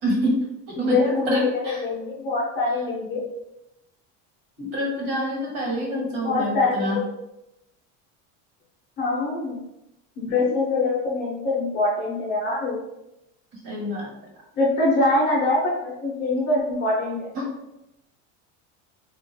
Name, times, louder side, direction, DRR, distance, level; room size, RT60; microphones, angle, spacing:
voice 1, 0.0-1.8 4.6-7.0 10.4-10.5 13.6-14.1 17.3-17.5, equal, 55° right, -2 dB, 1.4 m, -27 dB
voice 2, 0.8-3.2 6.2-7.0 9.0-9.6 10.2-12.8 14.6-17.3, left 2 dB, 30° left, -4 dB, 0.8 m, -24 dB
2.5 x 2.4 x 4.1 m, 0.87 s
cardioid pair, 180°, 36 cm